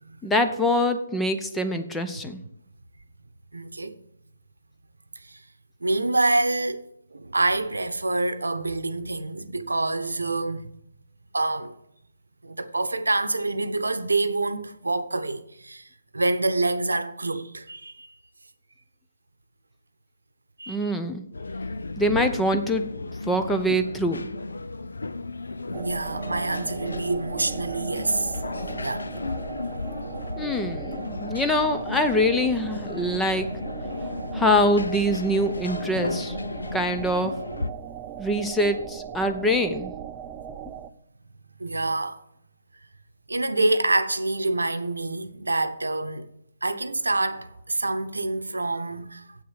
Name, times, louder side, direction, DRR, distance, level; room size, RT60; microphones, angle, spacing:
voice 1, 0.2-2.4 20.7-21.2 22.0-22.8 23.2-24.2 30.4-33.6 34.3-36.4 36.7-37.3 38.2-39.9, left 1 dB, 5° left, 0.7 m, -24 dB
voice 2, 3.5-4.0 5.2-5.4 5.8-6.8 7.1-10.7 11.3-11.7 12.4-15.9 16.1-18.1 20.6-20.9 22.1-22.3 25.7-28.4 28.8-29.1 29.6-30.0 41.6-42.2 43.3-46.3 46.6-49.2, right 2 dB, 80° right, 0.9 m, -26 dB
sound 1, 21.3-37.7, left 3 dB, 75° left, 0.6 m, -34 dB
sound 2, 25.7-40.9, right 9 dB, 25° right, 0.5 m, -39 dB
7.9 x 6.6 x 7.5 m
figure-of-eight pair, 135°, 0 cm